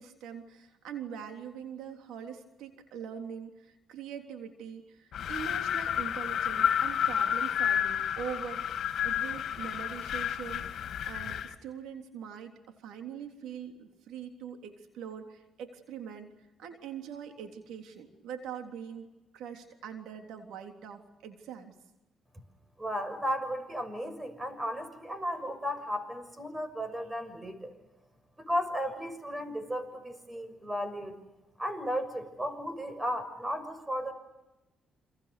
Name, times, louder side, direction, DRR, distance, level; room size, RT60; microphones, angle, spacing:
voice 1, 0.0-16.3 16.6-19.1 19.3-21.8, right 7 dB, 85° right, 4 dB, 3.5 m, -43 dB
Wind, 5.1-11.6, left 9 dB, 65° left, 2.5 m, -30 dB
voice 2, 22.8-27.7 28.4-31.1 31.6-34.1, equal, 15° right, 11 dB, 6.5 m, -34 dB
29.5 x 27.0 x 6.9 m, 1.0 s
cardioid pair, 90°, 0 cm